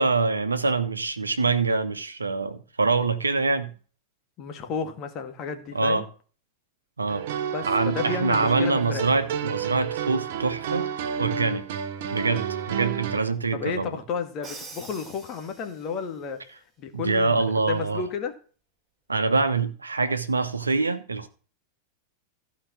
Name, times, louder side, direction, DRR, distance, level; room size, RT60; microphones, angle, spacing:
voice 1, 0.0-3.7 5.7-6.0 7.0-7.2 7.7-10.9 11.2-11.7 12.1-13.9 16.9-18.0 19.1-21.3, right 3 dB, 80° right, 1.1 m, -25 dB
voice 2, 4.4-6.0 7.5-9.1 13.5-16.4 16.8-18.3, left 6 dB, 35° left, 2.1 m, -32 dB
sound 1, 7.1-13.2, right 8 dB, 55° right, 1.0 m, -30 dB
Crash cymbal, 14.4-16.1, right 3 dB, 15° right, 5.6 m, -44 dB
14.5 x 5.2 x 6.2 m
figure-of-eight pair, 90°, 0 cm